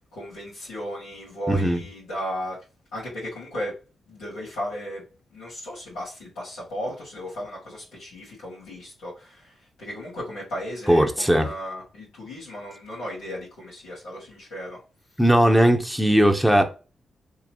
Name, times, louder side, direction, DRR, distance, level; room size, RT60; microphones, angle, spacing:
voice 1, 0.1-2.6 2.9-3.0 3.3-3.7 4.1-5.0 5.3-9.1 9.8-14.8, equal, 90° left, 2.3 m, -35 dB
voice 2, 1.5-1.8 10.9-11.5 15.2-16.6, equal, ahead, 0.9 m, -18 dB
3.8 x 2.9 x 3.0 m
supercardioid pair, 50°, 0 cm